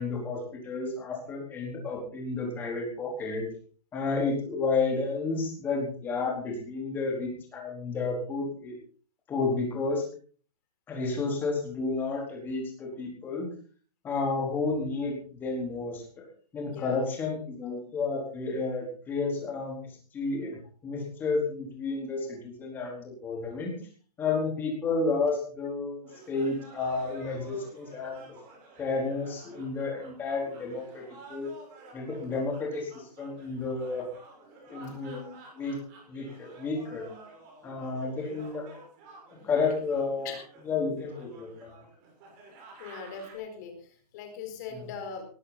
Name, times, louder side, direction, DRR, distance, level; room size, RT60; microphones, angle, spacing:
voice 1, 0.0-3.5 3.9-8.8 9.3-10.0 10.9-13.5 14.0-16.0 16.5-19.9 20.1-20.6 20.8-23.7 24.2-28.3 28.8-31.0 31.3-31.5 31.9-34.0 34.7-35.8 36.1-37.1 37.6-38.6 39.3-40.3 40.7-41.7 44.7-44.9, left 4 dB, 10° left, -1 dB, 4.2 m, -31 dB
voice 2, 16.6-17.0 27.2-27.3 34.9-35.0 38.2-38.4 40.2-40.4 42.8-45.2, left 6 dB, 25° left, 4 dB, 4.5 m, -41 dB
sound 1, 26.1-43.3, right 3 dB, 20° right, 6.3 m, -51 dB
18.5 x 15.5 x 4.2 m, 0.43 s
hypercardioid pair, 170°, 21 cm